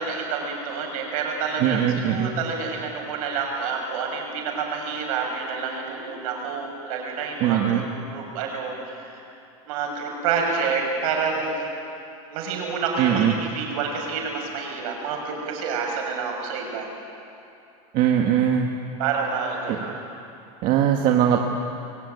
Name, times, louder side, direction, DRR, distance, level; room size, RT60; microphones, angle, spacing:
voice 1, 0.0-9.3 9.6-11.7 12.3-16.9 19.0-20.0, right 5 dB, 70° right, 1 dB, 6.8 m, -28 dB
voice 2, 1.6-2.3 7.4-7.8 13.0-13.3 17.9-18.7 19.7-19.8 20.6-21.4, right 10 dB, 45° right, 2 dB, 1.7 m, -20 dB
23.0 x 17.0 x 9.6 m, 2.6 s
supercardioid pair, 135°, 19 cm